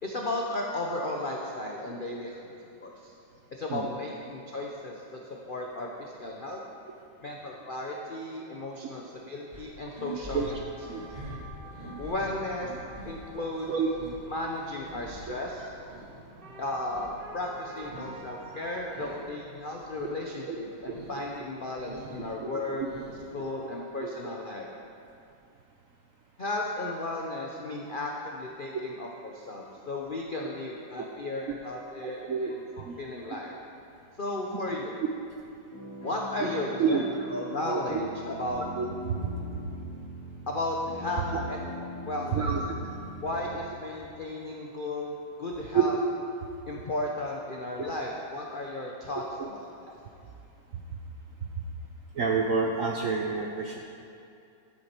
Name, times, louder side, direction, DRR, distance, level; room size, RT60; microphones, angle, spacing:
voice 1, 0.0-2.5 2.8-3.1 3.5-6.6 7.2-11.1 12.0-12.8 13.0-13.7 14.3-15.7 16.6-22.9 23.3-24.7 26.4-33.5 34.2-35.0 36.0-38.6 40.5-41.7 42.0-42.5 43.2-46.0 46.7-49.9, left 2 dB, 80° left, -1 dB, 0.4 m, -35 dB
sound 1, 9.5-16.1 16.5-18.3 18.5-19.3 19.6-20.2 20.6-21.2 21.6-23.4, right 2 dB, 25° right, 1.7 m, -45 dB
sound 2, 10.3-19.1, right 2 dB, 40° right, 0.8 m, -48 dB
voice 2, 32.0-32.5 32.8-32.9 36.8-37.0 37.7-38.0 38.7-38.9 39.2-39.3 42.3-42.8 45.7-45.8 47.8-47.9 52.2-53.8, right 6 dB, 70° right, 1 dB, 0.7 m, -28 dB
sound 3, 35.7-43.7, equal, 10° left, 2.7 m, -42 dB
11.0 x 8.4 x 4.4 m, 2.6 s
omnidirectional pair, 2.1 m